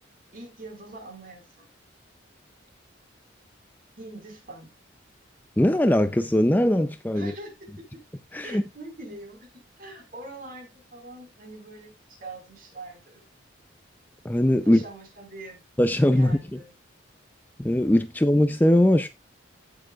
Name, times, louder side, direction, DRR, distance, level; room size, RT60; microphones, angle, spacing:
voice 1, 0.3-1.7 4.0-4.7 7.1-7.5 8.4-9.5 9.8-13.2 14.6-15.6 16.0-16.7, right 2 dB, 45° right, 4.6 m, -43 dB
voice 2, 5.6-7.3 8.3-8.6 14.2-14.8 15.8-16.6 17.6-19.1, left 1 dB, 10° left, 0.4 m, -21 dB
16.0 x 6.9 x 2.4 m
head